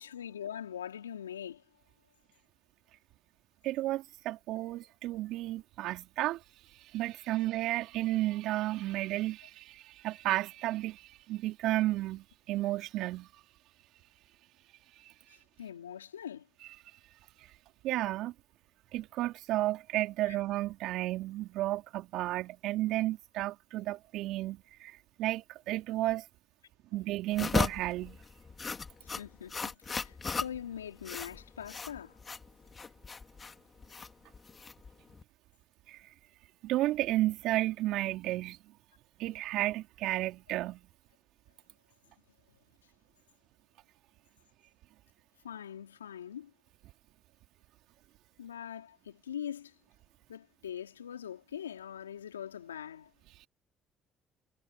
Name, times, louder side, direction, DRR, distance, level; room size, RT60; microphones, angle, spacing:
voice 1, 0.0-1.6 15.3-16.5 20.3-20.4 29.0-32.2 45.4-46.5 48.4-49.7 50.3-53.1, left 9 dB, 90° left, 3.7 m, -42 dB
voice 2, 3.6-6.4 6.9-11.0 11.3-13.3 17.8-18.3 18.9-26.2 26.9-28.2 35.9-36.0 36.6-38.6 39.2-40.8, right 16 dB, 70° right, 3.1 m, -32 dB
sound 1, 27.3-35.2, left 5 dB, 35° left, 2.6 m, -36 dB
hypercardioid pair, 50°, 0 cm